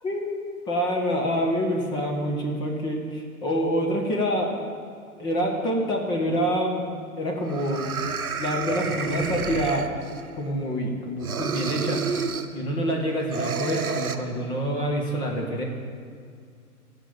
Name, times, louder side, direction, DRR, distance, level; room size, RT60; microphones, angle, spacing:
voice 1, 0.0-4.5 5.2-7.9 8.4-9.9 10.3-12.0 12.5-15.6, equal, 10° left, 0 dB, 0.9 m, -26 dB
sound 1, 7.0-7.1 7.5-10.3 11.2-12.6 13.3-14.2, right 5 dB, 65° right, 1.0 m, -30 dB
13.5 x 5.2 x 8.7 m, 2.2 s
figure-of-eight pair, 125°, 45 cm